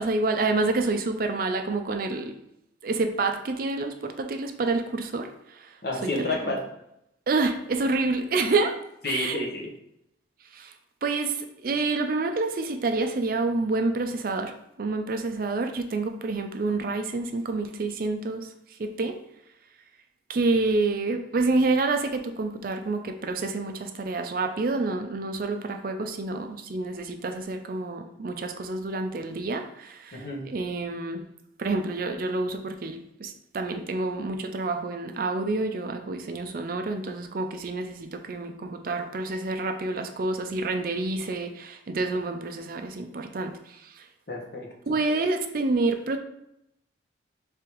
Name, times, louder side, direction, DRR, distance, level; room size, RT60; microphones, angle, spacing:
voice 1, 0.0-2.3 2.8-5.7 6.2-6.5 7.3-8.7 9.0-9.4 10.5-10.7 11.0-14.5 14.8-18.5 18.8-19.1 20.3-31.2 31.6-44.0 44.9-46.2, right 3 dB, 50° right, 6 dB, 0.4 m, -28 dB
voice 2, 5.8-6.7 9.0-9.7 30.1-30.5 44.3-45.0, left 2 dB, 55° left, 0 dB, 0.9 m, -30 dB
3.5 x 3.4 x 4.5 m, 0.80 s
head